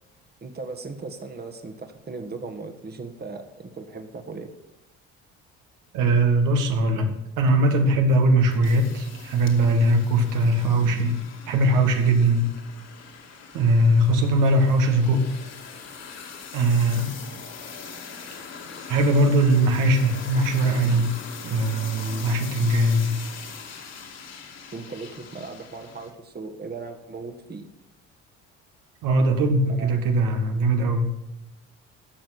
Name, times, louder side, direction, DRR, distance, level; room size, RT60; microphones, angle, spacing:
voice 1, 0.4-4.5 24.7-27.7 29.7-30.0, right 3 dB, 30° right, 6 dB, 1.5 m, -37 dB
voice 2, 5.9-7.1 7.4-11.1 11.5-12.4 13.5-15.3 16.5-17.1 18.9-21.1 21.4-23.1 29.0-31.1, right 1 dB, 80° right, 4 dB, 1.8 m, -20 dB
sound 1, 7.5-26.1, left 5 dB, 55° left, 2.3 m, -41 dB
12.0 x 6.4 x 7.9 m, 0.90 s
supercardioid pair, 75°, 31 cm